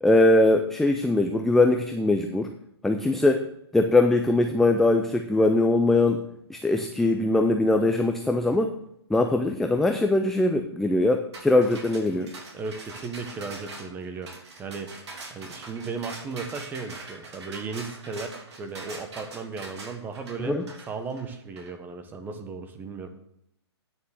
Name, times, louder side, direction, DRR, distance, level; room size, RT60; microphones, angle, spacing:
voice 1, 0.0-2.5 2.8-3.4 3.7-6.2 6.5-8.7 9.1-12.3 20.4-20.6, left 2 dB, ahead, 5 dB, 0.4 m, -21 dB
sound 1, 11.3-21.7, right 3 dB, 75° right, 3.2 m, -43 dB
voice 2, 12.5-14.3 14.6-14.9 15.3-20.6 20.9-23.1, right 4 dB, 15° right, 7 dB, 1.0 m, -36 dB
9.3 x 6.5 x 6.4 m, 0.76 s
hypercardioid pair, 145°, 14 cm